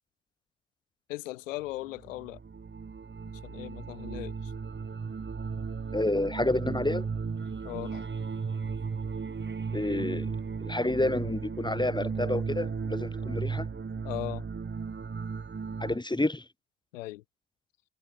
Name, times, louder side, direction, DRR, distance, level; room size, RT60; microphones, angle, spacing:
voice 1, 1.1-2.4 3.4-4.5 7.6-8.1 14.0-14.5 16.9-17.2, left 18 dB, 85° left, 2.3 m, -38 dB
sound 1, 1.9-16.0, right 5 dB, 30° right, 2.1 m, -35 dB
voice 2, 5.9-7.1 9.7-10.3 10.6-13.7 15.8-16.4, left 2 dB, 10° left, 2.5 m, -29 dB
hypercardioid pair, 45°, 37 cm